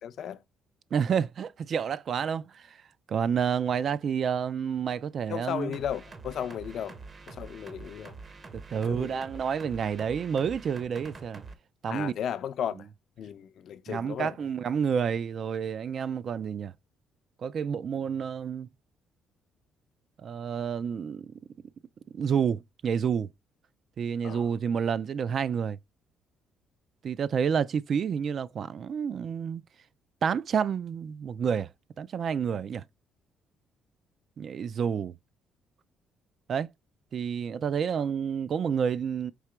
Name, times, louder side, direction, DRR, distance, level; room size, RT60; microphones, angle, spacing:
voice 1, 0.0-0.4 5.3-7.0 7.3-8.2 8.8-9.2 11.9-12.9 13.2-14.3 24.2-24.5, left 9 dB, 65° left, 0.5 m, -35 dB
voice 2, 0.9-2.8 3.1-5.7 8.5-11.4 11.8-12.1 13.9-16.7 17.4-18.7 20.2-21.3 22.1-23.3 24.0-25.8 27.0-29.6 30.2-31.7 32.0-32.8 34.4-35.2 36.5-36.7 37.1-39.3, right 7 dB, 55° right, 0.3 m, -29 dB
sound 1, 5.7-11.6, right 4 dB, 35° right, 0.7 m, -46 dB
4.7 x 2.8 x 3.2 m
cardioid pair, 95°, 0 cm